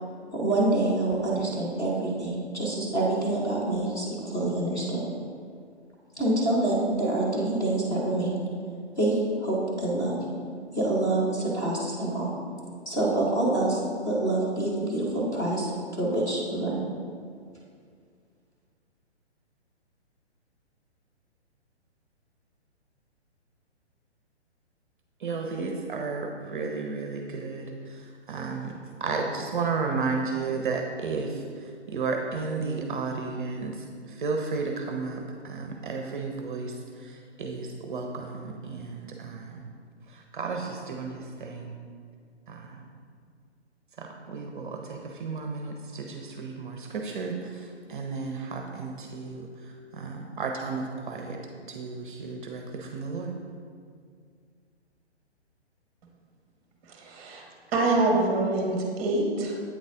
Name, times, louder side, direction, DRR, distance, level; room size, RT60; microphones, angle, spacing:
voice 1, 0.3-5.0 6.2-8.4 9.0-10.1 10.7-12.3 12.9-16.8, right 2 dB, 10° left, -7 dB, 0.7 m, -26 dB
voice 2, 25.2-39.7 40.1-41.8 42.5-42.9 44.0-51.4 51.7-53.3, right 4 dB, 45° right, 2 dB, 0.6 m, -33 dB
voice 3, 57.0-57.4 57.7-59.6, right 2 dB, 20° right, 0 dB, 1.0 m, -25 dB
8.4 x 4.0 x 3.6 m, 2.2 s
figure-of-eight pair, 130°, 34 cm